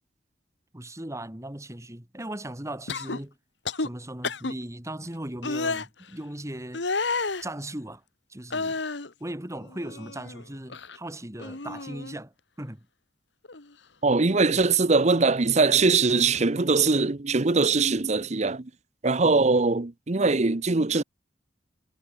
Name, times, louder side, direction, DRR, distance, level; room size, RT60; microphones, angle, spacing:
voice 1, 0.7-3.3 3.8-6.9 7.4-8.0 8.3-8.8 9.2-12.3 12.6-12.9 19.2-19.6, right 1 dB, 15° right, 2.6 m, -38 dB
sound 1, 2.9-3.2 3.6-3.9 4.2-4.5 5.4-5.8 6.7-7.4 8.5-9.1 9.6-10.4 10.7-11.0 11.4-12.2 13.4-13.6, left 3 dB, 75° left, 1.9 m, -31 dB
voice 2, 14.0-18.7 19.0-21.0, right 4 dB, 40° right, 0.9 m, -22 dB
head